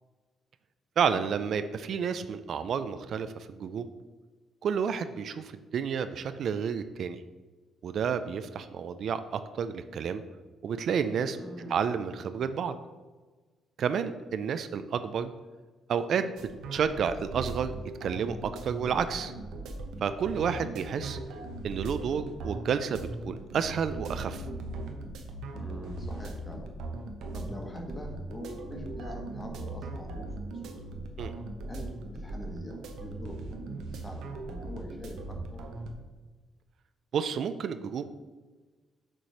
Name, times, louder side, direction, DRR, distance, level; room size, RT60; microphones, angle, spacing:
voice 1, 1.0-3.9 4.6-7.2 7.8-10.2 10.6-11.4 11.7-12.8 13.8-15.3 15.9-16.2 16.7-17.8 18.0-19.3 20.0-21.2 21.6-24.4 31.2-31.3 37.1-38.1, right 7 dB, 65° right, 11 dB, 0.4 m, -30 dB
voice 2, 11.3-11.8 25.5-26.7 27.3-30.8 31.7-35.6, equal, 20° left, 1 dB, 1.4 m, -44 dB
sound 1, 16.4-35.9, right 2 dB, 80° right, 0.8 m, -39 dB
6.6 x 3.1 x 5.7 m, 1.3 s
cardioid pair, 90°, 0 cm